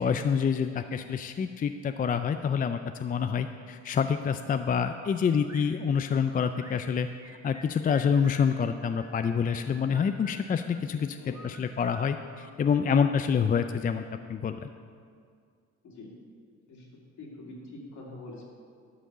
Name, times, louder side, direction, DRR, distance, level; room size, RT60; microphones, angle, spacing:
voice 1, 0.0-7.1 7.4-11.2 11.4-14.0 14.3-14.7, left 6 dB, 30° left, 8 dB, 0.4 m, -27 dB
sound 1, 4.9-5.7 6.4-8.4 9.0-10.8 11.3-13.2, equal, 10° right, 1.4 m, -50 dB
voice 2, 17.2-18.4, left 2 dB, 70° left, -3 dB, 2.5 m, -44 dB
11.5 x 5.1 x 6.7 m, 2.2 s
cardioid pair, 90°, 30 cm